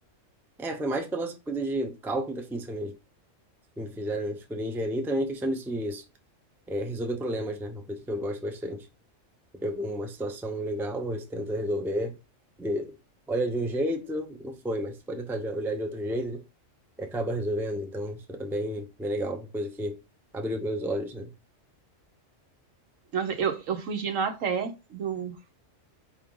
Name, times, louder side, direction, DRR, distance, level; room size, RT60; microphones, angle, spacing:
voice 1, 0.6-3.0 3.8-6.0 6.7-8.9 9.6-12.1 12.6-12.9 13.3-16.4 17.0-20.0 20.3-21.3, right 1 dB, 5° right, 0.4 m, -31 dB
voice 2, 23.1-25.3, right 6 dB, 85° right, 1.3 m, -29 dB
4.8 x 3.0 x 3.7 m
omnidirectional pair, 1.3 m